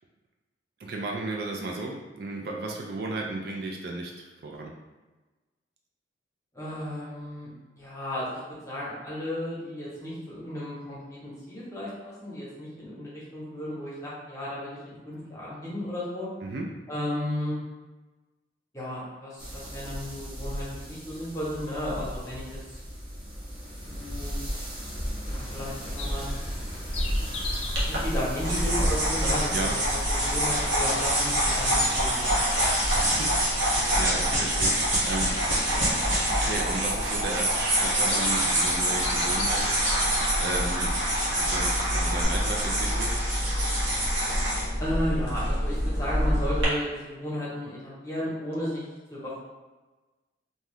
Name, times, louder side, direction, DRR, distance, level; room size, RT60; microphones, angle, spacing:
voice 1, 0.8-4.7 16.4-16.7 29.5-29.7 33.0-35.3 36.3-39.8 40.4-40.9 41.3-43.2, right 2 dB, 55° right, 0 dB, 0.3 m, -34 dB
voice 2, 6.5-7.5 7.7-8.4 8.7-16.3 16.9-17.5 18.7-22.5 22.7-22.8 23.9-24.3 25.3-26.2 27.9-32.7 44.8-48.8 49.1-49.4, left 1 dB, 15° left, -8 dB, 0.9 m, -34 dB
sound 1, 19.4-33.2, equal, 25° right, 0.7 m, -34 dB
Bird vocalization bird call bird song, 25.2-42.2, left 3 dB, 35° left, 0.3 m, -41 dB
sound 2, 27.7-46.6, right 1 dB, 90° right, 1.0 m, -26 dB
2.6 x 2.3 x 3.3 m, 1.2 s
head